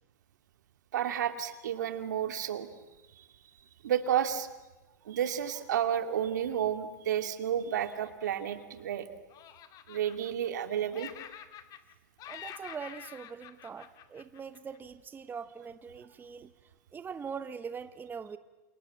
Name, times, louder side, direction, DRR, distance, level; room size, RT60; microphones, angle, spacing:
voice 1, 0.9-2.7 3.2-3.3 3.8-4.5 5.0-9.1 9.9-11.1, right 9 dB, 80° right, 8 dB, 2.4 m, -31 dB
Laughter, 7.7-9.0 9.3-10.7 10.9-11.9 12.2-14.8, left 10 dB, 40° left, 2.1 m, -48 dB
voice 2, 12.3-16.5 16.9-18.4, right 6 dB, 20° right, 12 dB, 1.1 m, -42 dB
28.5 x 28.0 x 7.5 m, 1.1 s
hypercardioid pair, 105°, 10 cm